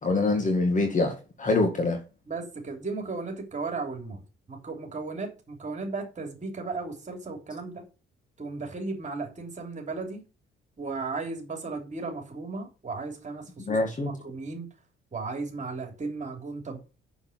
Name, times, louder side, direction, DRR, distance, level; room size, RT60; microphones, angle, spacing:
voice 1, 0.0-2.0 13.6-14.1, left 3 dB, 40° left, 2.1 m, -25 dB
voice 2, 2.3-4.2 4.5-7.8 8.4-10.2 10.8-13.8 14.0-14.7 15.1-16.8, right 3 dB, 35° right, 3.4 m, -35 dB
7.0 x 7.0 x 7.4 m
cardioid pair, 90°, 20 cm